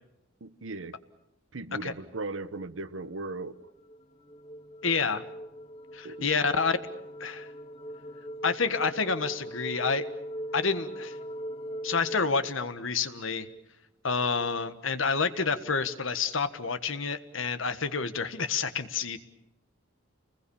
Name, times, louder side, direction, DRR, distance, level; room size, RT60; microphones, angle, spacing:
voice 1, 0.4-0.9 1.5-3.7 6.0-6.3, right 2 dB, 75° right, 13 dB, 1.1 m, -37 dB
sound 1, 2.8-12.4, equal, 30° left, 0.8 m, -40 dB
voice 2, 4.8-5.2 5.9-6.8 7.2-7.5 8.4-10.0 10.5-11.2 11.8-13.5 14.0-19.2, left 5 dB, 75° left, 11 dB, 1.5 m, -28 dB
29.0 x 20.5 x 7.1 m, 0.92 s
head